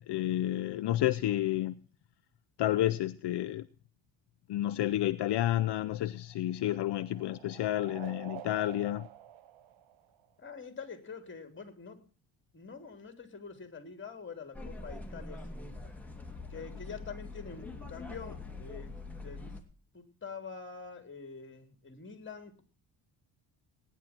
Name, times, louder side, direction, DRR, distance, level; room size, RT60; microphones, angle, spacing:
voice 1, 0.1-1.8 2.6-3.7 4.5-9.1, left 14 dB, 65° left, 0.7 m, -30 dB
sound 1, 5.8-10.6, right 11 dB, 80° right, 1.3 m, -49 dB
voice 2, 10.4-12.0 12.5-15.8 16.5-19.6 19.9-22.6, left 5 dB, 25° left, 3.3 m, -46 dB
sound 2, 14.5-19.6, left 3 dB, 5° left, 2.8 m, -44 dB
18.5 x 10.0 x 4.4 m
cardioid pair, 105°, 46 cm